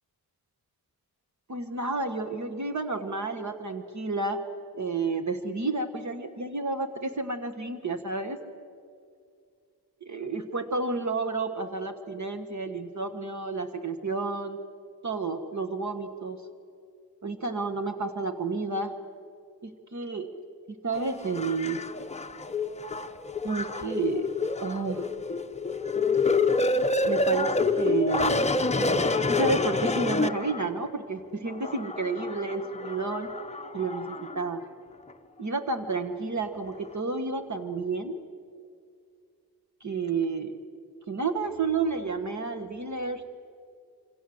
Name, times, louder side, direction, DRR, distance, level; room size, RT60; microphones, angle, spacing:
voice 1, 1.5-4.4 4.7-8.4 10.0-14.6 15.0-16.4 17.2-18.9 19.6-20.3 20.8-21.8 23.4-24.3 24.6-25.1 27.0-28.5 28.8-33.3 33.7-34.6 35.4-38.2 39.8-40.5 41.1-43.3, right 3 dB, 45° right, 7 dB, 1.5 m, -31 dB
sound 1, 21.0-30.9 31.5-34.5 35.1-35.2, left 3 dB, 15° left, 0.7 m, -28 dB
27.0 x 25.5 x 7.8 m, 2.3 s
wide cardioid pair, 160°, 39 cm